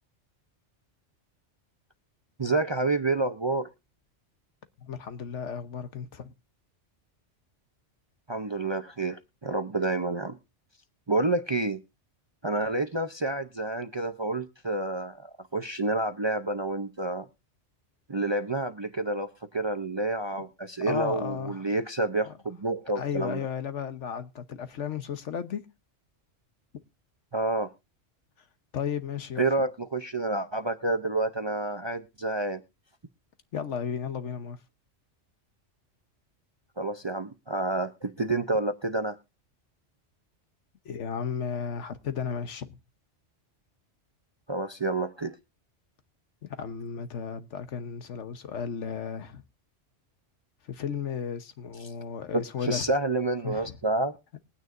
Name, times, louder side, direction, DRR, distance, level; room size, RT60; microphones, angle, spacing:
voice 1, 2.4-3.7 8.3-10.4 11.1-11.8 12.4-17.3 18.1-23.4 27.3-27.7 29.4-32.6 36.8-39.2 44.5-45.4 52.3-54.2, right 2 dB, 30° right, 0.5 m, -29 dB
voice 2, 4.8-6.3 20.8-21.6 22.9-25.6 28.7-29.5 33.5-34.6 40.8-42.8 46.4-49.4 50.7-52.8 53.4-53.7, left 7 dB, 75° left, 1.3 m, -34 dB
21.5 x 9.4 x 2.5 m
omnidirectional pair, 1.2 m